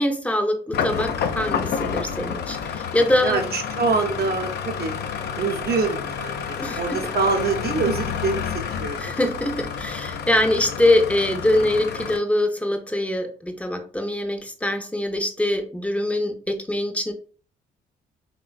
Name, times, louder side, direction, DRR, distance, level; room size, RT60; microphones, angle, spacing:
voice 1, 0.0-3.4 6.6-6.8 9.0-17.1, left 1 dB, 5° left, 6 dB, 0.6 m, -23 dB
sound 1, 0.7-12.2, left 7 dB, 55° left, 0.4 m, -29 dB
voice 2, 3.2-5.0 5.3-8.5 8.8-9.0, right 4 dB, 50° right, 2 dB, 0.7 m, -25 dB
3.1 x 2.2 x 2.3 m, 0.40 s
hypercardioid pair, 55°, 20 cm